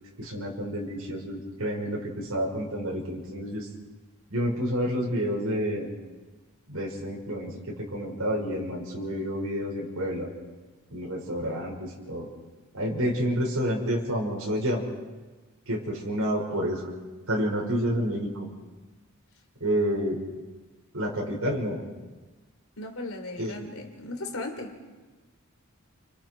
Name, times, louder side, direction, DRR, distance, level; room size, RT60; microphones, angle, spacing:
voice 1, 0.2-3.7 4.3-5.9 6.7-10.3 10.9-12.3 12.7-14.8 15.7-16.9 17.3-18.5 19.6-20.2 20.9-21.8 23.4-23.5, equal, 85° right, -2 dB, 6.0 m, -29 dB
voice 2, 22.8-24.8, left 2 dB, 75° left, 4 dB, 3.6 m, -37 dB
30.0 x 28.5 x 4.8 m, 1.3 s
head